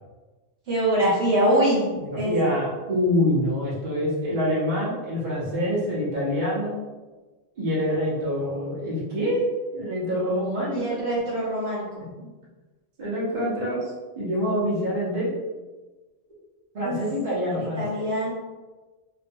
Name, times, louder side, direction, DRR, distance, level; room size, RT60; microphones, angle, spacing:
voice 1, 0.7-2.3 10.7-11.8 16.8-17.0 17.5-18.3, right 1 dB, 80° right, -6 dB, 1.2 m, -24 dB
voice 2, 1.9-6.8 7.6-9.5 9.7-10.8 13.0-13.8 14.2-15.3 16.7-18.1, equal, 50° right, -6 dB, 0.8 m, -26 dB
2.6 x 2.1 x 2.6 m, 1.2 s
omnidirectional pair, 1.1 m